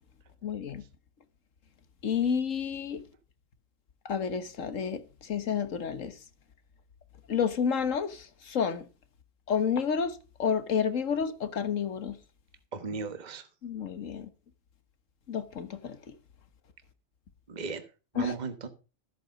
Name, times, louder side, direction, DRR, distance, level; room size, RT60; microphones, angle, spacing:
voice 1, 0.4-0.8 2.0-3.0 4.0-6.1 7.3-8.8 9.5-12.2 13.6-14.3 15.3-16.1 18.2-18.3, left 7 dB, 75° left, 1.6 m, -30 dB
voice 2, 12.7-13.5 17.5-17.8 18.1-18.7, right 4 dB, 35° right, 1.3 m, -36 dB
14.0 x 8.2 x 5.3 m
omnidirectional pair, 1.4 m